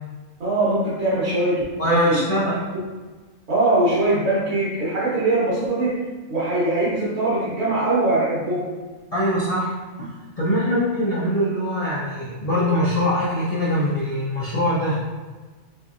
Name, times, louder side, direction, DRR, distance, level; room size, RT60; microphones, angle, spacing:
voice 1, 0.4-2.2 3.5-6.0 6.3-8.7, right 2 dB, 75° right, -9 dB, 1.4 m, -21 dB
voice 2, 1.8-2.6 9.1-15.0, equal, 60° left, -8 dB, 0.3 m, -23 dB
3.4 x 3.1 x 2.5 m, 1.3 s
omnidirectional pair, 1.4 m